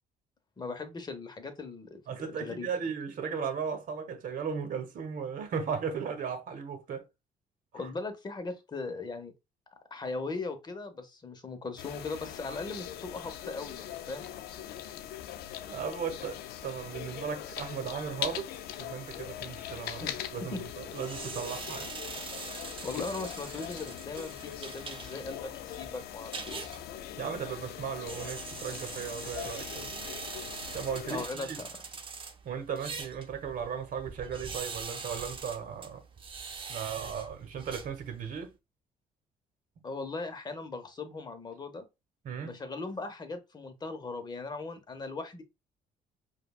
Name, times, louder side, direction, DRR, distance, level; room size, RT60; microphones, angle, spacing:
voice 1, 0.6-2.7 7.7-9.3 9.9-14.3 20.0-20.6 22.5-26.7 31.1-31.7 39.8-41.8 42.4-45.4, left 3 dB, 25° left, 0.8 m, -39 dB
voice 2, 2.1-7.0 15.6-21.9 27.2-30.0 30.7-31.6 32.4-36.0 36.7-38.5 42.2-42.6, right 6 dB, 60° right, 1.0 m, -36 dB
sound 1, 11.8-31.3, left 11 dB, 90° left, 0.4 m, -41 dB
sound 2, 20.9-38.4, right 5 dB, 35° right, 0.7 m, -43 dB
5.1 x 2.3 x 2.3 m
cardioid pair, 100°, 16 cm